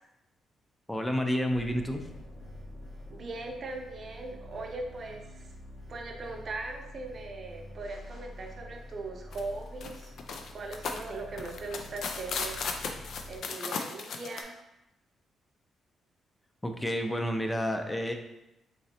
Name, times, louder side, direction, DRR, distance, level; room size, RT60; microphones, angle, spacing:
voice 1, 0.9-2.1 16.6-18.1, equal, 15° left, 5 dB, 0.5 m, -30 dB
sound 1, 1.5-13.4, left 1 dB, 50° left, 1.4 m, -47 dB
voice 2, 3.1-5.5 5.9-10.1 10.5-12.7 13.3-14.6, right 3 dB, 55° right, 2 dB, 0.6 m, -40 dB
sound 2, 9.3-9.4 9.8-14.4, left 5 dB, 70° left, 0.4 m, -36 dB
3.7 x 3.1 x 2.8 m, 0.89 s
cardioid pair, 65°, 0 cm